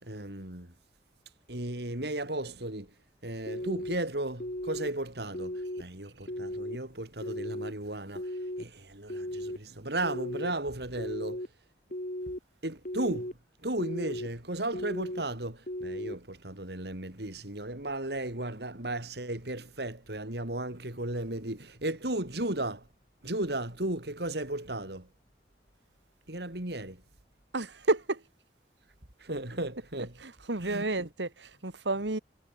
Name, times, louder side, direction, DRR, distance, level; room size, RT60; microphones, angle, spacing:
voice 1, 0.0-0.7 1.5-2.9 3.2-11.5 12.6-13.4 13.6-22.9 23.2-25.1 26.3-27.0 29.2-30.2 30.6-31.1, right 1 dB, 65° right, 3.7 m, -35 dB
sound 1, 3.5-4.0 4.4-4.9 5.3-5.8 6.3-6.8 7.2-7.7 8.2-8.6 9.1-9.6 10.0-10.5 11.0-11.5 11.9-12.4 12.9-13.3 13.8-14.3 14.7-15.2 15.7-16.2, left 1 dB, 45° left, 3.8 m, -36 dB
voice 2, 27.5-28.2 30.5-32.2, right 2 dB, 85° right, 2.1 m, -30 dB
head